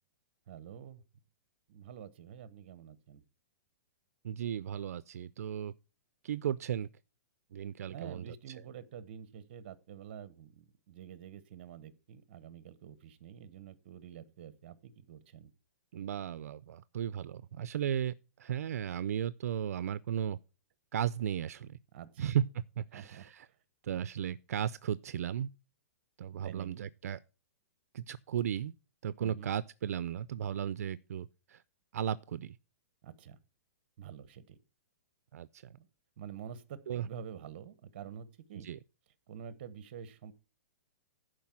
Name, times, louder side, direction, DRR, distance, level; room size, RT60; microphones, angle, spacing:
voice 1, 0.5-1.0 1.7-3.2 7.9-15.5 21.9-22.3 22.9-23.5 26.4-26.8 29.2-29.5 33.0-33.4 34.0-34.6 35.8-35.9 36.2-38.7 39.3-40.3, right 8 dB, 40° right, 0.9 m, -48 dB
voice 2, 4.2-5.7 6.2-6.9 7.5-8.5 15.9-20.4 20.9-21.8 22.2-23.5 23.8-25.5 26.2-27.2 27.9-28.7 29.0-31.6 31.9-32.6 35.3-35.8 36.9-37.1 38.5-38.8, right 9 dB, 70° right, 0.4 m, -35 dB
11.5 x 5.0 x 5.8 m
hypercardioid pair, 175°, 9 cm